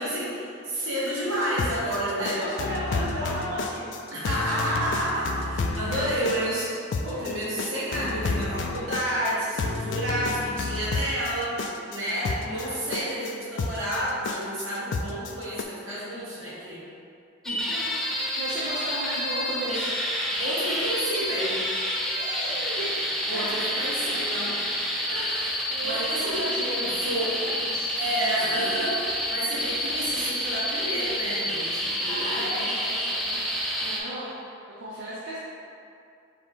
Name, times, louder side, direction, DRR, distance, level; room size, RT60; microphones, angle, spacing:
voice 1, 0.0-2.4 4.1-6.7 7.0-16.8 20.4-21.6 23.3-24.5 25.1-26.5 27.0-27.4 28.0-32.7, right 1 dB, 85° right, -8 dB, 1.3 m, -30 dB
sound 1, 1.4-15.6, left 3 dB, 65° left, 0.3 m, -31 dB
voice 2, 2.3-3.9 5.4-5.5 5.8-6.0 12.0-12.7 17.4-19.9 22.1-23.5 24.0-24.5 25.7-27.1 27.4-27.9 29.4-29.5 32.0-34.3 34.8-35.4, equal, 70° right, -9 dB, 0.7 m, -35 dB
sound 2, 17.4-34.0, equal, ahead, 0.4 m, -29 dB
4.8 x 2.8 x 3.6 m, 2.5 s
head